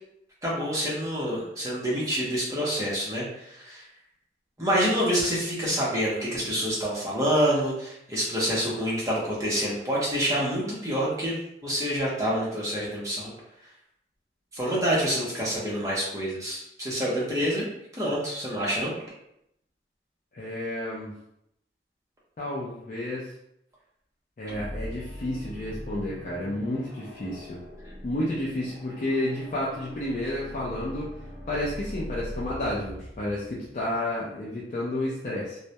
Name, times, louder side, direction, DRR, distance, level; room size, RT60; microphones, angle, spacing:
voice 1, 0.4-3.8 4.6-13.3 14.5-17.6 17.9-18.9, equal, 20° right, -6 dB, 0.6 m, -27 dB
voice 2, 20.3-21.1 22.4-23.3 24.4-27.6 28.0-31.2 31.5-35.6, left 1 dB, 45° left, -7 dB, 0.4 m, -31 dB
sound 1, 24.4-34.1, equal, 5° left, 1.0 m, -41 dB
2.2 x 2.1 x 2.7 m, 0.78 s
head